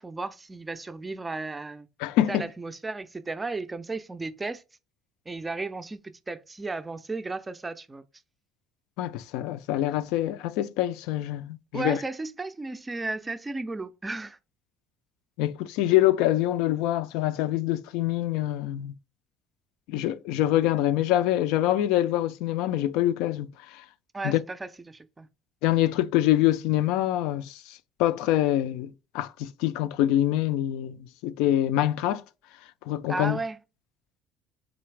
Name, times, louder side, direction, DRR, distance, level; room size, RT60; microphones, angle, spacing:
voice 1, 0.0-1.9 2.3-4.6 5.3-8.0 11.7-14.4 24.1-25.3 33.1-33.6, right 3 dB, 15° right, 0.4 m, -34 dB
voice 2, 2.0-2.5 9.0-12.0 15.4-18.9 19.9-23.8 24.2-24.4 25.6-32.2 32.9-33.4, left 13 dB, 85° left, 0.4 m, -25 dB
3.9 x 3.3 x 3.2 m
cardioid pair, 150°, 0 cm